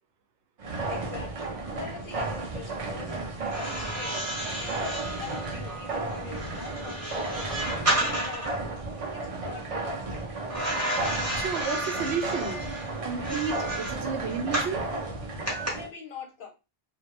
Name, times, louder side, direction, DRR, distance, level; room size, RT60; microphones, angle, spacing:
sound 1, 0.6-15.9, right 2 dB, 50° right, 0.4 m, -34 dB
voice 1, 0.8-3.4 3.6-4.3 4.6-8.7 9.1-10.2 15.7-16.5, left 5 dB, 55° left, 2 dB, 0.7 m, -43 dB
sound 2, 3.4-8.6 10.5-14.8 15.5-15.7, right 1 dB, 15° right, 0.8 m, -32 dB
voice 2, 11.3-12.6 13.0-14.8, right 5 dB, 80° right, 5 dB, 0.9 m, -32 dB
2.2 x 2.1 x 2.9 m, 0.27 s
omnidirectional pair, 1.1 m